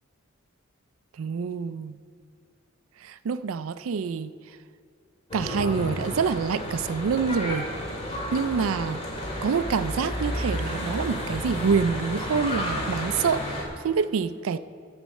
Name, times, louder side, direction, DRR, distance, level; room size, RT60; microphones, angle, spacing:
voice 1, 1.2-2.0 3.0-4.3 5.3-7.7 8.3-9.0 9.4-14.6, right 5 dB, 75° right, 0.4 m, -26 dB
Church bell / Traffic noise roadway noise, 5.3-13.6, left 1 dB, 30° left, 2.2 m, -31 dB
11.0 x 7.3 x 6.4 m
head